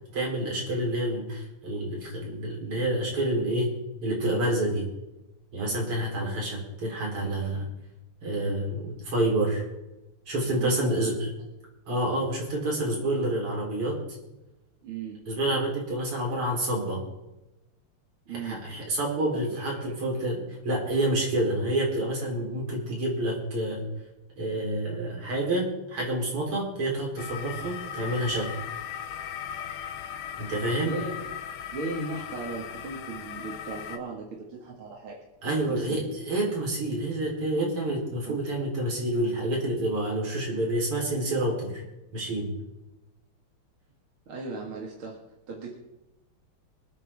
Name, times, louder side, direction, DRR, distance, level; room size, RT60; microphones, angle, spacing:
voice 1, 0.1-3.7 4.0-4.9 5.5-7.7 8.2-9.6 10.3-11.1 11.9-14.0 15.3-17.0 18.4-23.8 24.4-28.5 30.4-30.9 35.4-41.8 42.1-42.5, right 1 dB, 90° right, -2 dB, 4.9 m, -28 dB
voice 2, 10.6-11.0 14.8-15.2 18.3-18.6 19.3-19.9 30.8-31.3 31.7-35.1 35.7-36.1 38.2-38.4 44.3-45.2 45.5-45.7, right 3 dB, 70° right, -2 dB, 2.9 m, -37 dB
sound 1, 27.2-34.0, left 9 dB, 75° left, 1.7 m, -38 dB
25.5 x 9.1 x 3.6 m, 0.99 s
omnidirectional pair, 2.4 m